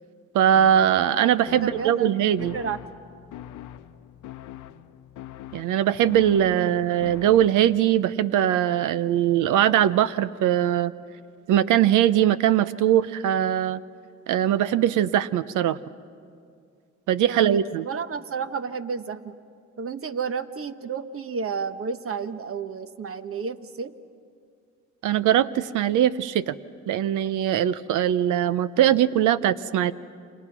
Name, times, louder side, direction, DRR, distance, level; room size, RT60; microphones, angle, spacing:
voice 1, 0.3-2.5 5.5-10.9 11.5-13.8 14.3-15.8 17.1-17.8 25.0-26.5 26.9-29.9, right 11 dB, 85° right, 15 dB, 0.8 m, -21 dB
sound 1, 0.5-7.9, left 12 dB, 85° left, 0.8 m, -43 dB
voice 2, 1.5-2.8 6.4-6.8 17.3-19.4 19.8-23.9, right 5 dB, 45° right, 10 dB, 1.1 m, -32 dB
29.5 x 26.0 x 6.1 m, 2.3 s
cardioid pair, 90°, 30 cm